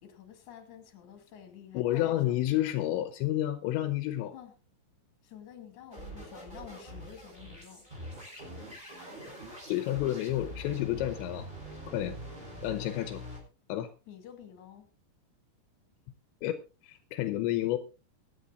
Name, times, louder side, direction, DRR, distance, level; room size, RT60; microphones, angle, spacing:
voice 1, 0.0-2.7 4.3-4.5 5.2-7.9 14.1-14.9, left 9 dB, 45° left, 6 dB, 3.5 m, -50 dB
voice 2, 1.7-4.3 9.7-11.5 11.9-12.2 12.6-13.2 13.7-13.9 16.4-17.8, left 14 dB, 80° left, 9 dB, 3.1 m, -30 dB
sound 1, 5.9-13.4, equal, 10° right, 5.6 m, -44 dB
24.5 x 10.5 x 2.5 m, 0.31 s
omnidirectional pair, 5.2 m